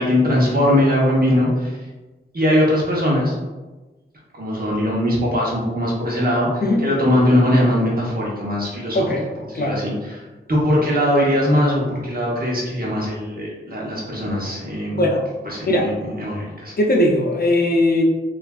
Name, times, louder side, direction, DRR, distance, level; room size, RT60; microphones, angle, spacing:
voice 1, 0.0-1.8 2.3-3.4 4.3-9.1 9.4-15.1 15.4-16.7, left 1 dB, 50° right, -4 dB, 0.9 m, -20 dB
voice 2, 16.8-18.0, left 1 dB, 50° left, 0 dB, 0.5 m, -18 dB
3.2 x 2.4 x 2.3 m, 1.2 s
wide cardioid pair, 60°, 20 cm